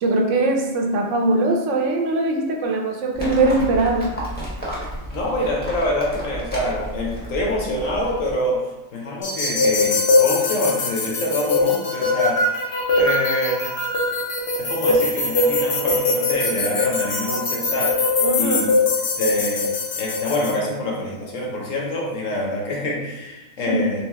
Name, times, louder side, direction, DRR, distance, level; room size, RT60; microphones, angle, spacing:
voice 1, 0.0-4.1 18.2-18.6 23.7-23.8, right 2 dB, 70° right, 1 dB, 0.9 m, -21 dB
Livestock farm animals working animals, 3.1-8.3, equal, 10° left, 0.9 m, -32 dB
voice 2, 5.1-8.6 8.9-12.4 13.0-13.6 14.6-17.9 18.4-18.7 19.2-24.0, left 1 dB, 70° left, -2 dB, 1.3 m, -26 dB
sound 1, 9.2-20.5, left 3 dB, 55° left, 0.9 m, -21 dB
3.3 x 3.2 x 3.5 m, 1.1 s
omnidirectional pair, 1.4 m